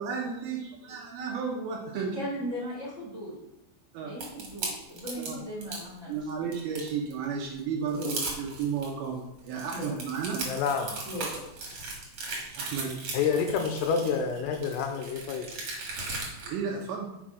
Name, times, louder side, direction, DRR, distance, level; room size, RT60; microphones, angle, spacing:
voice 1, 0.0-2.2 3.9-4.4 5.3-5.4 6.1-10.5 12.6-12.9 16.4-17.1, right 6 dB, 80° right, 0 dB, 2.2 m, -33 dB
voice 2, 1.9-3.4 4.0-6.5 7.9-8.1 9.7-9.9 11.0-11.3, equal, 25° right, -6 dB, 1.5 m, -37 dB
sound 1, 4.2-5.8 6.3-7.1 7.6-7.7 7.9-8.9 9.4-16.5, right 3 dB, 50° right, 2.1 m, -37 dB
voice 3, 10.5-11.0 13.1-15.5, left 6 dB, 85° left, 5 dB, 2.4 m, -28 dB
6.1 x 6.0 x 4.9 m, 0.91 s
omnidirectional pair, 5.4 m